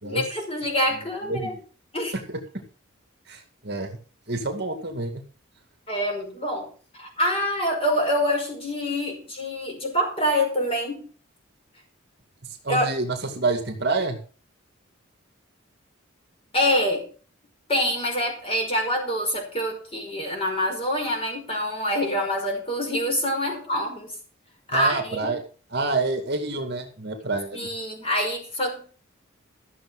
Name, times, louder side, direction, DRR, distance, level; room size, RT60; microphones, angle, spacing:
voice 1, 0.0-1.6 1.9-2.1 5.9-6.7 6.9-11.1 12.7-12.9 16.5-17.1 17.7-24.1 24.7-25.3 27.5-28.9, equal, 25° left, 1 dB, 5.2 m, -26 dB
voice 2, 1.3-1.6 2.3-2.4 3.3-4.0 4.3-5.2 12.6-14.2 24.7-25.4 25.7-27.6, right 3 dB, 50° right, 5 dB, 2.3 m, -28 dB
14.0 x 7.2 x 6.4 m, 0.39 s
head